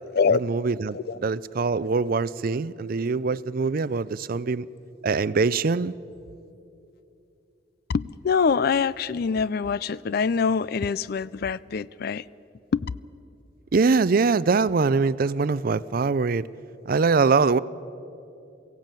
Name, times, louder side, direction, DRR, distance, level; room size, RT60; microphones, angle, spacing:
voice 1, 0.3-4.7 5.0-5.9 13.7-16.5 16.9-17.6, right 4 dB, 50° right, 18 dB, 0.5 m, -23 dB
voice 2, 7.9-12.2 12.7-12.9, left 5 dB, 55° left, 20 dB, 0.4 m, -24 dB
23.0 x 16.0 x 9.0 m, 2.8 s
head